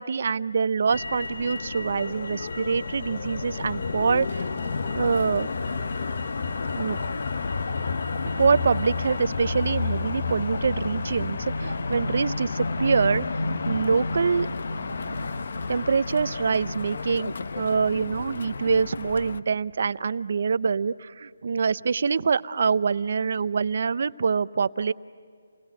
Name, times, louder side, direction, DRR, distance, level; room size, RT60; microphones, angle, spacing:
voice 1, 0.0-4.6 4.9-5.5 6.8-7.0 8.4-13.3 13.7-14.5 15.7-24.9, right 5 dB, 55° right, 15 dB, 0.6 m, -25 dB
Motor vehicle (road), 0.9-19.4, left 4 dB, 60° left, 0.9 m, -32 dB
sound 1, 2.2-19.3, left 2 dB, 45° left, 2.7 m, -36 dB
29.0 x 20.5 x 7.8 m, 2.1 s
hypercardioid pair, 165°, 0 cm